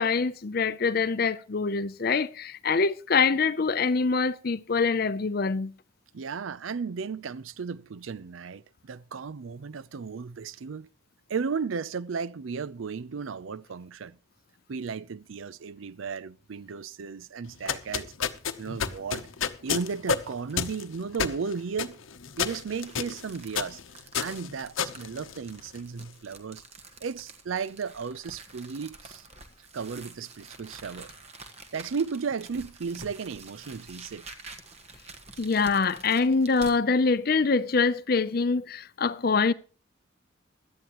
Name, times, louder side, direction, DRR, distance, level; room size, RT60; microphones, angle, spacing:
voice 1, 0.0-5.7 35.4-39.5, left 4 dB, 50° left, 0.6 m, -25 dB
voice 2, 6.1-10.9 11.3-14.2 14.7-18.1 18.6-19.3 19.6-22.0 22.4-23.8 24.2-26.6 27.0-29.2 29.7-31.1 31.7-34.3, right 5 dB, 80° right, 0.5 m, -34 dB
sound 1, 17.5-25.9, left 7 dB, 80° left, 0.9 m, -32 dB
sound 2, 18.7-19.0 19.5-19.6 20.1-20.7 21.6-36.8, right 3 dB, 30° right, 1.5 m, -48 dB
17.0 x 12.0 x 3.0 m
head